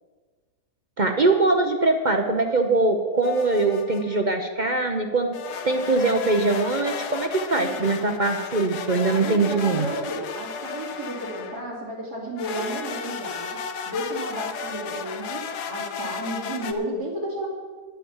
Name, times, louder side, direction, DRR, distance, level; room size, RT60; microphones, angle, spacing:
voice 1, 1.0-5.3 5.6-9.9, right 3 dB, 40° right, 4 dB, 0.7 m, -22 dB
sound 1, 3.2-4.2 5.3-11.7 12.4-16.7, left 6 dB, 90° left, 1.4 m, -34 dB
voice 2, 7.5-7.9 9.1-13.6 13.9-17.5, right 1 dB, 80° right, -2 dB, 3.0 m, -32 dB
10.5 x 9.0 x 7.1 m, 1.4 s
omnidirectional pair, 1.7 m